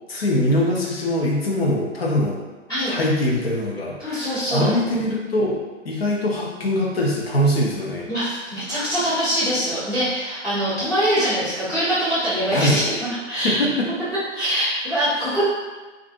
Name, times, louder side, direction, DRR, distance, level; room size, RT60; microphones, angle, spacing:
voice 1, 0.1-2.4 2.8-5.6 5.8-8.1 12.5-12.8 13.3-13.9, left 1 dB, 55° left, -3 dB, 0.7 m, -22 dB
voice 2, 4.0-4.7 8.1-13.6 14.3-15.5, equal, 10° left, -14 dB, 0.8 m, -23 dB
2.5 x 2.4 x 2.5 m, 1.2 s
figure-of-eight pair, 130°, 37 cm